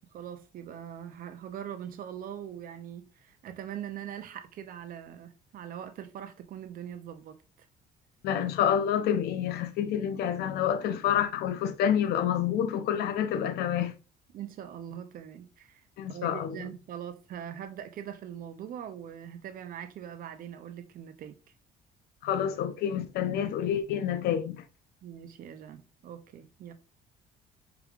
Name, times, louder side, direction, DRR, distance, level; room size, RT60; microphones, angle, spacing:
voice 1, 0.1-7.4 14.3-15.8 16.1-21.4 25.0-26.7, right 9 dB, 55° right, 0.6 m, -42 dB
voice 2, 8.2-13.9 16.0-16.7 22.2-24.6, left 9 dB, 70° left, 0.6 m, -28 dB
4.7 x 3.5 x 2.4 m
cardioid pair, 110°, 17 cm